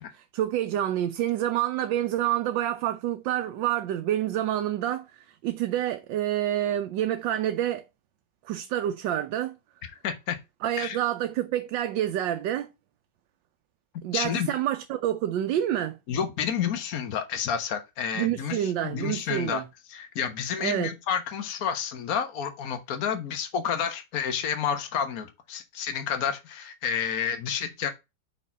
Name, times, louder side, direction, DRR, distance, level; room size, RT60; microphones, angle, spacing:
voice 1, 0.1-5.1 5.4-7.8 8.4-9.6 10.6-12.7 14.0-16.0 18.2-19.6 20.6-20.9, right 12 dB, 85° right, 1.4 m, -28 dB
voice 2, 10.0-10.4 10.8-11.0 13.9-14.5 16.1-19.6 19.9-27.9, left 8 dB, 55° left, 1.5 m, -30 dB
5.4 x 4.2 x 5.8 m
omnidirectional pair, 2.0 m